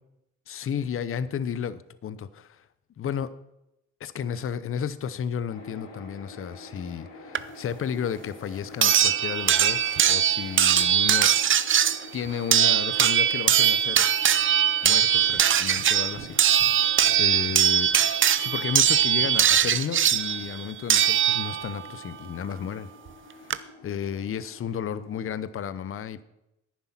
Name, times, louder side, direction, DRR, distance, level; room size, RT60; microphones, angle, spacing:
voice 1, 0.5-2.6 3.0-3.3 4.0-11.4 12.1-14.1 14.8-17.9 18.4-22.9 23.3-26.2, left 8 dB, 45° left, 0.7 m, -33 dB
sound 1, 5.5-25.5, left 2 dB, 90° left, 2.9 m, -47 dB
sound 2, 7.3-7.4 8.8-21.8 23.1-23.2 23.5-23.6, right 9 dB, 40° right, 0.6 m, -21 dB
10.5 x 9.6 x 5.9 m
cardioid pair, 90°, 30 cm